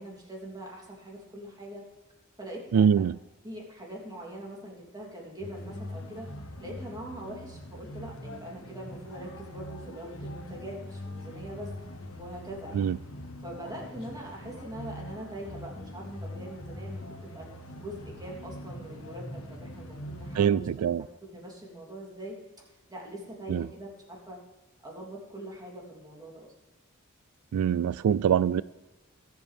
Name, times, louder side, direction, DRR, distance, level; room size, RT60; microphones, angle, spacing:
voice 1, 0.0-1.8 2.4-3.1 3.4-6.3 6.6-11.8 12.2-12.9 13.4-17.0 17.3-17.5 17.8-20.7 21.3-24.4 24.8-26.5, right 1 dB, 20° right, 3.2 m, -42 dB
voice 2, 2.7-3.2 12.7-13.0 20.3-21.0 23.5-23.7 27.5-28.6, right 8 dB, 90° right, 0.3 m, -24 dB
sound 1, 5.4-20.4, left 1 dB, 65° left, 1.5 m, -42 dB
21.0 x 8.0 x 3.5 m
head